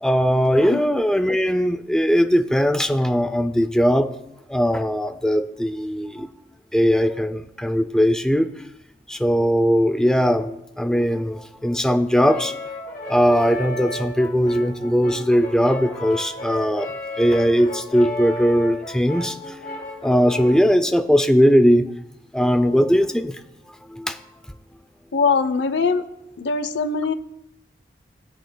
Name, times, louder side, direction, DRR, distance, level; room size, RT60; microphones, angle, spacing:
voice 1, 0.0-4.1 4.5-6.3 6.7-8.5 9.1-12.5 13.1-19.5 20.0-21.9 22.3-23.4 23.9-24.2, equal, 5° left, 8 dB, 0.4 m, -19 dB
Brass instrument, 12.2-20.7, left 1 dB, 50° left, 3.0 m, -33 dB
voice 2, 25.1-26.0 26.4-27.1, left 4 dB, 85° left, 11 dB, 0.6 m, -21 dB
18.5 x 8.0 x 2.3 m, 0.84 s
head